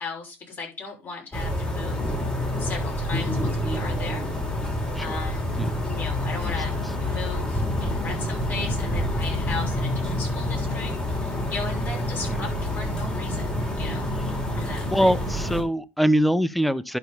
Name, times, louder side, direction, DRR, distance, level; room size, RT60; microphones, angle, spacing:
voice 1, 0.0-2.1 2.6-4.3 5.0-5.5 5.8-14.1 14.6-15.1, left 4 dB, 35° left, 6.0 m, -37 dB
sound 1, 1.3-15.6, left 1 dB, 15° left, 3.6 m, -27 dB
voice 2, 14.9-17.0, equal, ahead, 0.6 m, -23 dB
11.5 x 4.7 x 5.4 m
cardioid pair, 115°, 6 cm